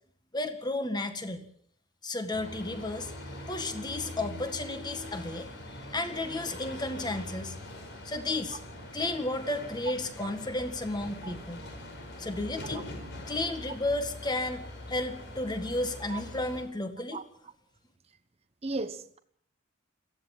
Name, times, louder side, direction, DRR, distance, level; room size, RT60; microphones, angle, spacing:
voice 1, 0.3-1.4 2.0-3.1 3.5-5.5 5.9-7.6 8.0-8.6 8.9-11.7 12.2-12.9 13.3-17.2, left 2 dB, 20° left, 1.8 m, -33 dB
sound 1, 2.3-16.6, left 1 dB, 55° left, 5.0 m, -43 dB
voice 2, 18.6-19.2, right 3 dB, 30° right, 1.0 m, -35 dB
22.5 x 15.5 x 7.4 m
head